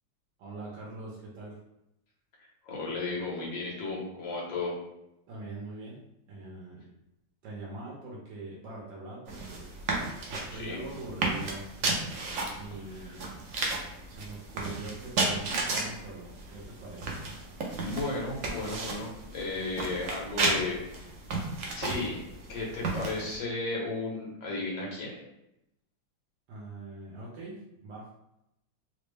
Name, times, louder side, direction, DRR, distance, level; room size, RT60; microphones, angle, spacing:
voice 1, 0.4-1.6 5.3-6.0 6.3-6.9 7.4-9.7 10.3-11.6 12.5-13.2 14.1-17.1 26.5-28.0, right 2 dB, 80° right, -5 dB, 1.5 m, -42 dB
voice 2, 2.4-4.7 10.5-10.8 12.9-13.2 17.8-21.1 21.7-22.2 22.5-25.1, left 3 dB, 80° left, -3 dB, 1.7 m, -34 dB
sound 1, 9.3-23.4, right 3 dB, 65° right, 0.8 m, -34 dB
3.9 x 2.0 x 3.3 m, 0.84 s
omnidirectional pair, 1.9 m